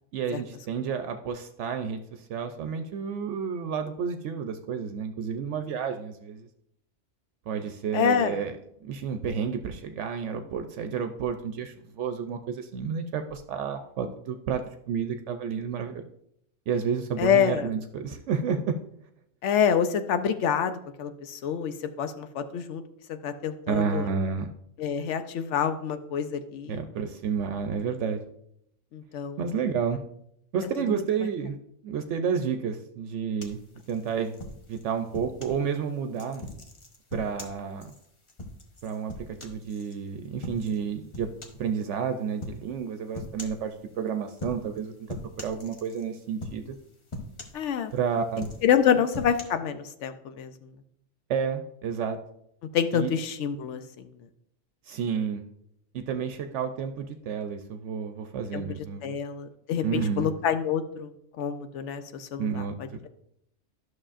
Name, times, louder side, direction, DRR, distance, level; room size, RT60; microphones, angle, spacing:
voice 1, 0.1-6.5 7.5-16.0 16.7-18.6 23.7-24.5 26.7-28.2 29.4-30.0 30.5-31.6 31.8-33.6 33.9-34.4 34.7-36.4 37.1-37.9 38.8-39.1 39.4-41.3 41.6-44.9 45.4-46.7 47.9-48.5 51.3-52.2 52.9-53.1 54.9-55.4 55.9-59.2 59.8-60.3 62.4-62.8, right 6 dB, 80° right, 6 dB, 0.9 m, -30 dB
voice 2, 7.9-8.4 17.2-17.7 19.4-22.8 23.1-24.1 24.8-26.8 28.9-29.4 30.9-31.0 47.5-47.9 48.6-50.5 52.7-54.1 58.5-58.6 59.0-61.1 61.4-63.1, left 8 dB, 80° left, 9 dB, 0.9 m, -27 dB
sound 1, 33.4-35.6 36.1-40.0 40.4-40.8 41.1-41.7 42.4-42.6 43.1-43.7 44.3-44.8 45.1-46.1 46.4-46.8 47.1-48.0 48.3-49.4, left 2 dB, 30° left, 0.8 m, -40 dB
11.0 x 6.2 x 2.5 m, 0.73 s
omnidirectional pair, 1.2 m